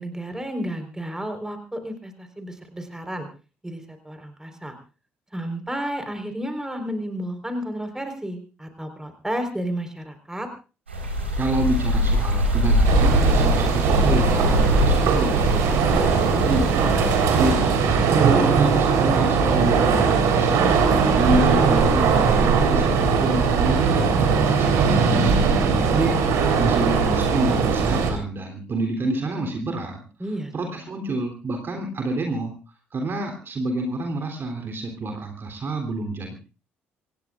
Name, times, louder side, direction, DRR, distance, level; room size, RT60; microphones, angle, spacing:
voice 1, 0.0-3.3 3.6-4.7 5.3-10.5 20.5-21.0 30.2-30.5, right 1 dB, 10° right, 6 dB, 4.4 m, -32 dB
sound 1, 10.9-17.5, equal, 85° right, 4.3 m, -23 dB
voice 2, 11.4-30.0 30.5-32.5 32.9-36.3, right 2 dB, 35° right, 3 dB, 3.3 m, -28 dB
sound 2, 12.8-28.1, right 5 dB, 55° right, 3.9 m, -20 dB
26.5 x 17.5 x 2.5 m, 0.34 s
figure-of-eight pair, 45°, 6 cm